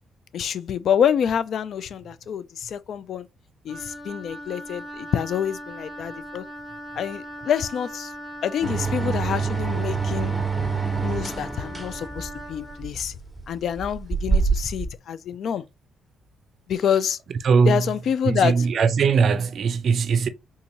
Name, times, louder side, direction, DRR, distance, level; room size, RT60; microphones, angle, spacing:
voice 1, 0.3-3.3 3.7-6.4 7.0-8.1 8.4-10.3 11.0-13.1 13.5-15.6 16.7-17.2 17.7-18.5, left 8 dB, 65° left, 0.3 m, -26 dB
Wind instrument woodwind instrument, 3.7-12.8, equal, 20° left, 1.2 m, -39 dB
sound 1, 8.6-14.9, right 4 dB, 10° right, 1.1 m, -26 dB
voice 2, 17.4-17.8 18.3-20.3, right 5 dB, 55° right, 0.4 m, -20 dB
3.6 x 2.6 x 2.9 m
cardioid pair, 90°, 0 cm